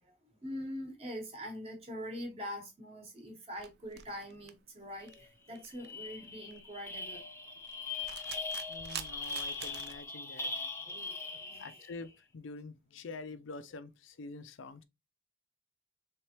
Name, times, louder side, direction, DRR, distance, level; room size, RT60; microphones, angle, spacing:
voice 1, 0.0-7.3 8.3-8.5 10.8-11.8, equal, 30° right, 1.0 m, -44 dB
sound 1, 3.6-10.0, right 9 dB, 55° right, 0.4 m, -47 dB
sound 2, 5.1-5.2 5.5-12.0, left 4 dB, 15° left, 0.4 m, -41 dB
voice 2, 8.7-10.7 11.6-14.8, left 3 dB, 75° left, 0.4 m, -46 dB
3.4 x 3.3 x 2.8 m
head